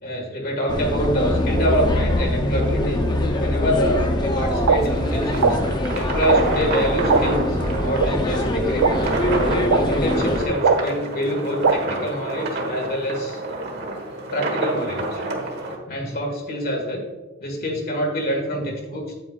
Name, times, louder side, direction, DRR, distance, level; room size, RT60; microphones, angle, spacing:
voice 1, 0.0-3.1 3.4-5.6 5.9-8.9 9.9-13.4 14.3-15.3 15.9-17.0 17.4-19.1, equal, 50° left, 1 dB, 1.9 m, -26 dB
sound 1, 0.7-10.5, left 1 dB, 20° left, 0.8 m, -23 dB
sound 2, 4.5-15.8, right 2 dB, 55° right, 1.4 m, -29 dB
sound 3, 4.7-4.8 5.4-5.5 6.3-6.4 7.1-7.2 8.0-8.1 8.8-8.9 9.7-9.8 10.6-10.8 11.6-11.7, right 5 dB, 80° right, 0.6 m, -16 dB
8.9 x 8.7 x 2.5 m, 1.3 s
head